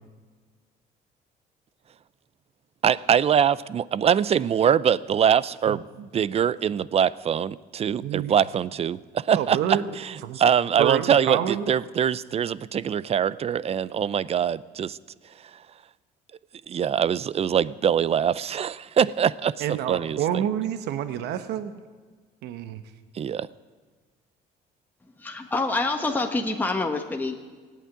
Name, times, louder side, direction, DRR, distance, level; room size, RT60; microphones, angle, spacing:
voice 1, 2.8-5.9 6.1-15.0 16.7-20.4 23.2-23.5, right 8 dB, 35° right, 20 dB, 0.5 m, -23 dB
voice 2, 8.0-8.3 9.3-9.9 10.2-10.4 10.8-11.7 19.6-21.7 22.4-22.8, right 10 dB, 80° right, 10 dB, 0.9 m, -28 dB
voice 3, 25.2-27.4, left 3 dB, 10° left, 3 dB, 1.2 m, -26 dB
17.0 x 8.5 x 9.5 m, 1.5 s
cardioid pair, 110°, 17 cm